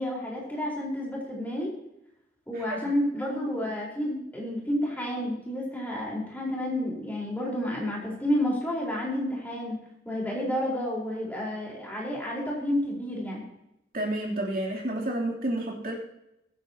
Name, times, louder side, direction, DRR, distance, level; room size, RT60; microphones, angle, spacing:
voice 1, 0.0-1.7 2.5-9.8 10.0-13.4, left 1 dB, 10° left, -4 dB, 4.6 m, -30 dB
voice 2, 13.9-15.9, right 1 dB, 50° right, -2 dB, 3.3 m, -30 dB
23.0 x 10.0 x 3.0 m, 0.84 s
head